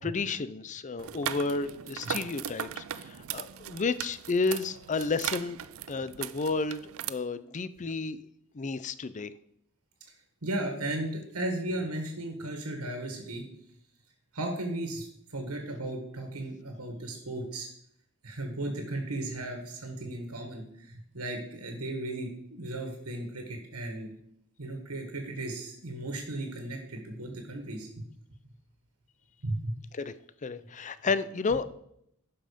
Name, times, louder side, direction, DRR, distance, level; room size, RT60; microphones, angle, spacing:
voice 1, 0.0-5.6 5.9-8.2 8.5-9.3 29.9-30.1 30.4-31.7, left 4 dB, 35° left, 14 dB, 0.5 m, -31 dB
sound 1, 1.0-7.1, right 10 dB, 65° right, 0.4 m, -38 dB
voice 2, 10.4-13.4 14.3-17.7 18.2-24.1 24.6-28.0 29.4-29.7, right 1 dB, 85° right, 3 dB, 1.7 m, -35 dB
11.5 x 5.6 x 5.2 m, 0.73 s
head